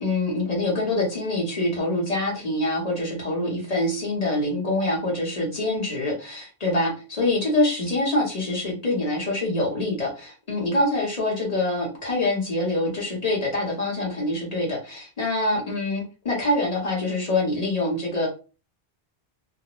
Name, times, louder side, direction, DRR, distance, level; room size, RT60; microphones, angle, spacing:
voice 1, 0.0-18.3, left 2 dB, 40° left, -2 dB, 0.9 m, -25 dB
2.4 x 2.0 x 2.9 m, 0.34 s
omnidirectional pair, 1.1 m